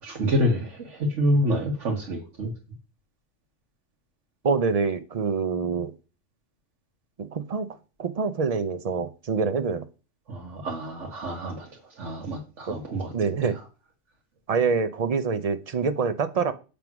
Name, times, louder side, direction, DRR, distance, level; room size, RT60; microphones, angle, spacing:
voice 1, 0.0-2.5 10.3-13.1, equal, 80° right, -1 dB, 1.6 m, -27 dB
voice 2, 4.4-5.9 7.2-7.7 8.0-9.9 12.7-12.8 13.1-13.6 14.5-16.5, right 5 dB, 45° right, 11 dB, 0.5 m, -25 dB
7.7 x 3.5 x 5.9 m, 0.34 s
omnidirectional pair, 1.2 m